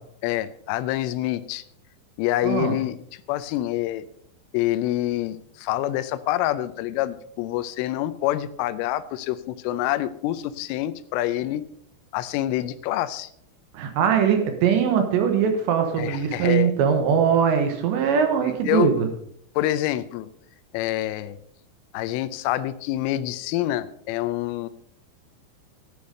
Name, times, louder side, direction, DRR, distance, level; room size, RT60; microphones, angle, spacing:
voice 1, 0.2-1.6 2.2-4.0 4.5-11.6 12.1-13.3 16.0-16.7 18.4-18.9 19.6-20.3 20.7-21.4 21.9-24.7, left 14 dB, 85° left, 13 dB, 3.1 m, -26 dB
voice 2, 2.4-2.7 13.7-19.1, right 7 dB, 70° right, 6 dB, 3.1 m, -21 dB
13.0 x 8.6 x 5.2 m, 0.68 s
omnidirectional pair, 5.8 m